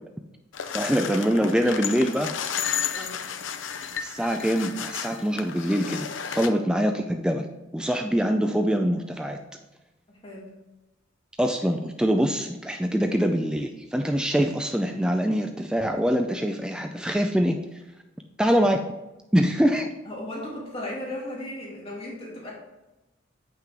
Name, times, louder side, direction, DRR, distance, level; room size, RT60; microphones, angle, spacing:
sound 1, 0.5-6.5, left 8 dB, 75° left, 0.6 m, -32 dB
voice 1, 0.7-2.3 4.0-6.1 6.3-7.5 7.7-9.4 11.4-17.6 18.4-18.8 19.3-19.9, equal, 5° right, 4 dB, 0.4 m, -24 dB
voice 2, 2.9-3.2 6.4-6.5 10.1-10.5 20.1-22.5, left 1 dB, 30° left, -5 dB, 2.3 m, -36 dB
9.0 x 5.8 x 3.4 m, 1.0 s
head